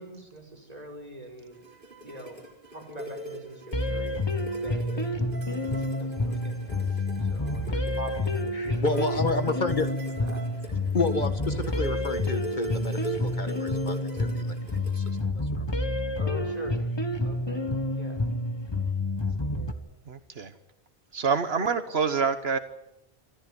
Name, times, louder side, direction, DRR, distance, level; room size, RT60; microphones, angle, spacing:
voice 1, 0.0-1.6 2.0-2.4 2.7-4.2 4.5-9.7 10.2-10.4 15.6-15.7 16.2-17.7 18.0-18.3 19.5-19.8, right 1 dB, 40° right, 1 dB, 5.5 m, -44 dB
sound 1, 1.5-15.2, equal, 55° right, 4.3 m, -42 dB
sound 2, 3.7-19.7, left 2 dB, 25° left, 1.5 m, -29 dB
voice 2, 8.5-9.9 10.9-16.1, left 3 dB, 50° left, 9 dB, 1.7 m, -31 dB
voice 3, 20.1-20.5 21.1-22.6, right 5 dB, 80° right, 10 dB, 1.4 m, -26 dB
25.5 x 14.5 x 9.9 m, 0.86 s
omnidirectional pair, 1.0 m